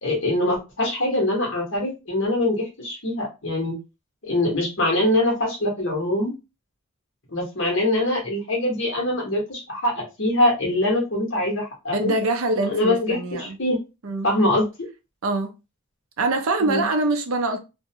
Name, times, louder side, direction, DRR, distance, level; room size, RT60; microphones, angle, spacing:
voice 1, 0.0-3.8 4.2-6.3 7.3-12.1 12.7-13.8 14.2-14.7 16.6-16.8, left 1 dB, 60° left, 1.1 m, -23 dB
voice 2, 11.9-13.6 14.0-14.3 15.2-15.5 16.2-17.6, right 2 dB, 75° right, 0.5 m, -24 dB
2.6 x 2.1 x 2.8 m
head